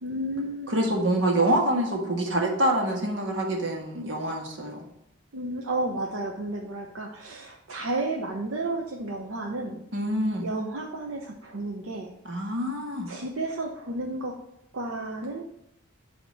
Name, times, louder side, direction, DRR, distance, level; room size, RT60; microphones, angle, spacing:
voice 1, 0.0-1.0 5.3-9.9 10.4-12.1 13.1-14.4 14.7-15.4, right 2 dB, 90° right, 1 dB, 0.7 m, -32 dB
voice 2, 0.7-4.8 9.9-10.4 12.2-13.1, right 1 dB, 70° right, 1 dB, 1.4 m, -26 dB
7.3 x 2.9 x 5.9 m, 0.82 s
head